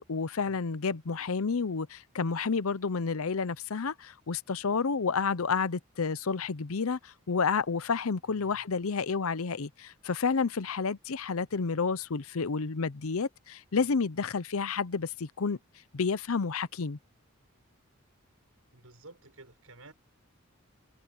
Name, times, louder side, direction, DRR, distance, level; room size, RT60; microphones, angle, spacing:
voice 1, 0.0-15.6 15.9-17.0, left 5 dB, 75° left, 0.7 m, -30 dB
voice 2, 8.3-8.6 11.5-11.6 13.7-14.0 18.7-19.9, right 2 dB, 80° right, 5.6 m, -53 dB
head